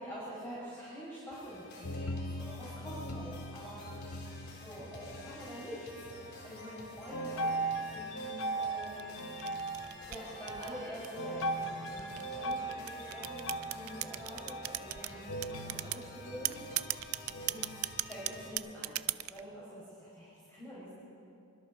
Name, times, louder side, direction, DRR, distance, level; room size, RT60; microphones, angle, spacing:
voice 1, 0.0-3.8 4.6-5.9 6.2-9.3 10.1-16.6 17.4-17.6 18.0-20.9, equal, 10° left, -9 dB, 5.8 m, -46 dB
sound 1, 1.3-18.5, left 2 dB, 50° left, 3.6 m, -50 dB
sound 2, 1.8-5.7 5.9-6.6 7.1-18.4, right 1 dB, 65° left, 1.0 m, -40 dB
sound 3, 8.8-11.3 12.0-15.1 15.4-16.0 16.4-19.4, right 16 dB, 80° right, 0.5 m, -36 dB
27.0 x 24.5 x 4.3 m, 2.6 s
head